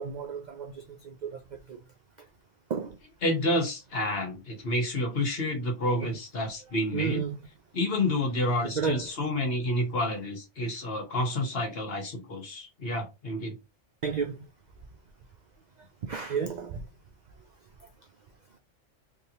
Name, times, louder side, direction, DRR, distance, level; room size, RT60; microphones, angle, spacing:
voice 1, 0.0-1.8 2.7-3.0 6.0-6.1 6.9-7.4 8.7-9.1 14.0-14.5 16.0-16.8, right 6 dB, 60° right, 0.4 m, -32 dB
voice 2, 3.2-7.2 7.7-13.5, left 1 dB, 55° left, 1.3 m, -29 dB
3.3 x 2.7 x 2.8 m
omnidirectional pair, 1.3 m